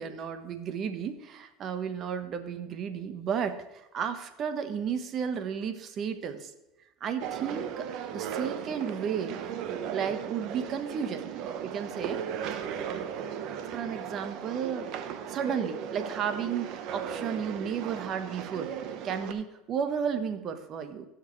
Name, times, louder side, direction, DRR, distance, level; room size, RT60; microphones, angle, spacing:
voice 1, 0.0-3.6 3.9-6.5 7.0-9.4 9.9-11.3 11.6-14.9 15.3-18.7 19.0-21.1, right 7 dB, 45° right, 9 dB, 1.2 m, -33 dB
sound 1, 7.2-19.3, right 8 dB, 65° right, 1.0 m, -36 dB
16.5 x 6.5 x 3.2 m, 0.97 s
supercardioid pair, 100°, 0 cm